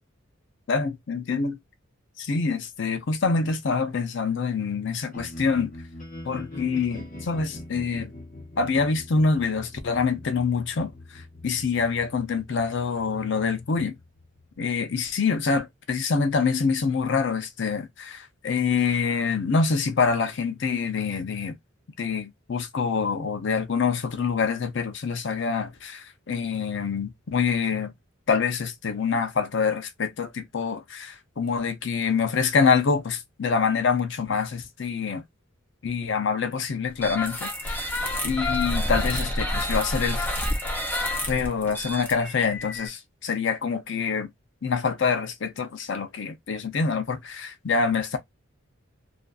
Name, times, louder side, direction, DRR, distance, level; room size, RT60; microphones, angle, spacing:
voice 1, 0.7-1.6 2.2-5.7 6.2-8.1 8.6-14.0 14.6-21.6 22.0-27.9 28.3-35.2 35.8-37.9 38.2-40.3 41.3-44.3 44.6-48.2, left 5 dB, 60° left, 0.5 m, -26 dB
sound 1, 5.1-15.2, left 1 dB, 40° left, 1.0 m, -43 dB
sound 2, 37.0-42.9, left 1 dB, 10° left, 0.6 m, -29 dB
2.5 x 2.5 x 2.3 m
head